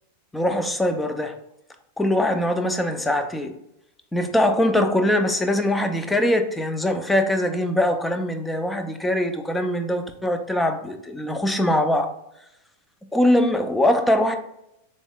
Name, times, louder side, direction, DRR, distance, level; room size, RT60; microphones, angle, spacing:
voice 1, 0.3-1.4 2.0-3.5 4.1-12.1 13.1-14.4, left 1 dB, 5° left, 7 dB, 0.5 m, -22 dB
4.1 x 3.5 x 2.3 m, 0.81 s
hypercardioid pair, 120°, 0 cm